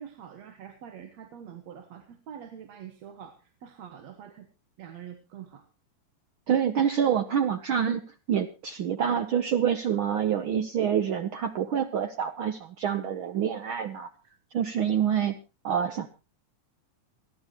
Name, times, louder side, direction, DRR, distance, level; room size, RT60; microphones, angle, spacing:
voice 1, 0.0-4.5 4.8-5.6, right 8 dB, 65° right, 7 dB, 2.4 m, -45 dB
voice 2, 6.5-8.0 8.3-14.1 14.5-15.4 15.6-16.1, right 8 dB, 85° right, 8 dB, 1.1 m, -26 dB
28.0 x 10.5 x 2.9 m, 0.29 s
omnidirectional pair, 3.5 m